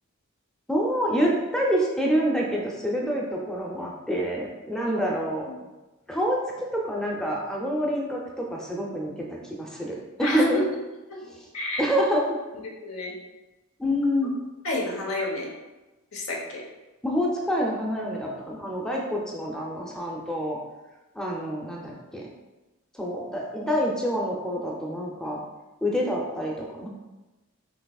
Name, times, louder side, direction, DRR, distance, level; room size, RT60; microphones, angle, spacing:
voice 1, 0.7-5.5 6.1-10.6 11.3-11.5 11.8-12.4 13.8-14.3 17.0-20.6 21.1-22.3 22.9-25.4 25.8-26.9, equal, 5° left, -2 dB, 0.5 m, -27 dB
voice 2, 10.2-10.6 11.1-11.2 11.5-11.8 12.8-13.1 14.6-15.5 16.1-16.6, left 2 dB, 85° left, -1 dB, 0.9 m, -29 dB
5.9 x 2.9 x 2.3 m, 1.1 s
head